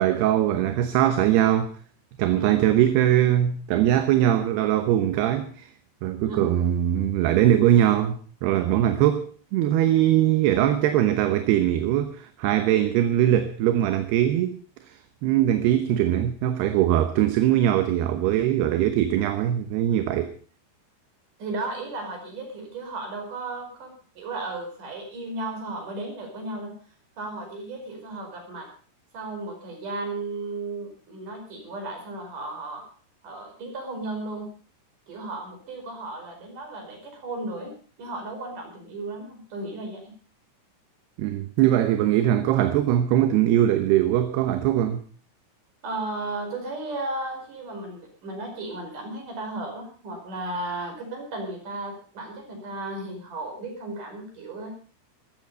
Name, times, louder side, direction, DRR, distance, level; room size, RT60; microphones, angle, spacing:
voice 1, 0.0-1.7 2.2-5.7 6.0-14.6 14.9-15.0 15.2-20.3 41.2-45.0, right 11 dB, 75° right, 3.0 m, -21 dB
voice 2, 21.4-26.8 27.2-28.7 29.1-32.8 33.2-34.5 35.1-40.1 45.8-54.7, right 2 dB, 50° right, 6.3 m, -35 dB
15.0 x 13.5 x 5.5 m
omnidirectional pair, 4.8 m